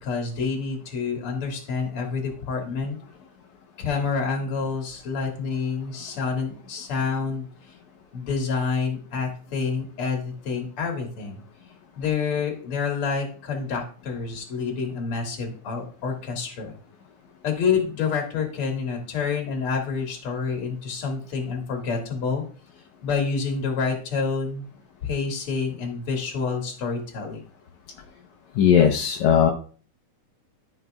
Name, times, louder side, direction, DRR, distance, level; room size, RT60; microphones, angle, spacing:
voice 1, 0.0-3.0 3.8-7.5 8.1-11.4 12.0-16.7 17.4-22.4 23.0-24.6 25.0-27.4, left 5 dB, 50° left, 1 dB, 2.6 m, -28 dB
voice 2, 28.6-29.5, left 8 dB, 75° left, 2 dB, 2.0 m, -18 dB
13.5 x 6.2 x 2.3 m, 0.41 s
omnidirectional pair, 3.6 m